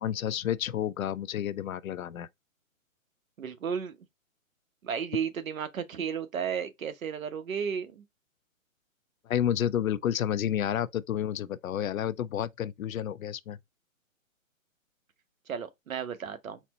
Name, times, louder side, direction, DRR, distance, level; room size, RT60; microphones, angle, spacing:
voice 1, 0.0-2.3 9.3-13.6, left 10 dB, 80° left, 0.6 m, -30 dB
voice 2, 3.4-4.0 4.8-8.0 15.5-16.6, right 7 dB, 75° right, 1.0 m, -33 dB
4.2 x 2.1 x 4.0 m
hypercardioid pair, 160°, 41 cm